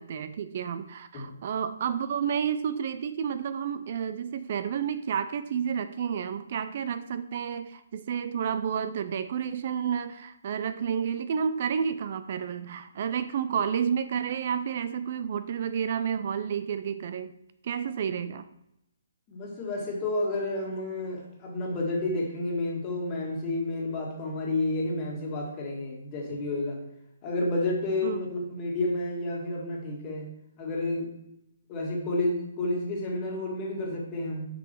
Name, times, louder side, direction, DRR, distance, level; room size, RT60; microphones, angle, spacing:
voice 1, 0.0-17.4 17.6-18.5 28.0-28.2, right 7 dB, 45° right, 11 dB, 0.4 m, -30 dB
voice 2, 19.3-26.8 27.2-30.3 30.6-31.1 31.7-34.5, left 2 dB, 25° left, -2 dB, 1.8 m, -30 dB
6.1 x 5.3 x 4.4 m, 0.80 s
hypercardioid pair, 160°, 0 cm